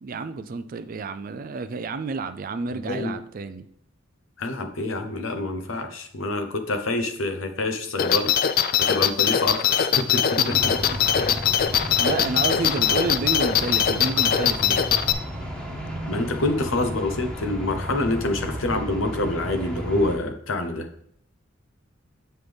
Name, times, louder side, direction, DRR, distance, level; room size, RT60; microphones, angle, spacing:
voice 1, 0.0-3.6 10.4-10.8 11.1-11.3 12.0-14.9, right 4 dB, 45° right, 11 dB, 0.4 m, -30 dB
voice 2, 2.7-3.1 4.4-8.3 8.8-10.2 10.5-10.6 16.0-20.9, left 2 dB, 85° left, 6 dB, 0.9 m, -26 dB
sound 1, 8.0-15.1, left 9 dB, 50° left, 0.4 m, -21 dB
sound 2, 10.5-20.2, equal, 5° left, 1.3 m, -33 dB
7.8 x 5.5 x 3.4 m, 0.70 s
head